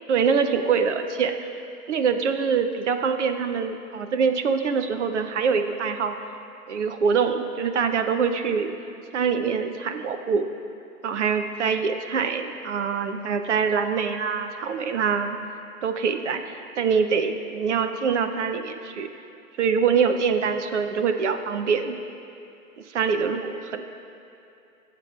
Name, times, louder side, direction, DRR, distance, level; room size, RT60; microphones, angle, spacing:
voice 1, 0.1-1.3 1.9-6.2 6.7-8.7 9.1-10.5 11.0-15.4 15.8-16.4 16.8-19.1 19.6-22.0 22.9-23.8, right 6 dB, 50° right, 8 dB, 0.7 m, -24 dB
20.5 x 7.7 x 2.4 m, 2.8 s
hypercardioid pair, 160°, 45 cm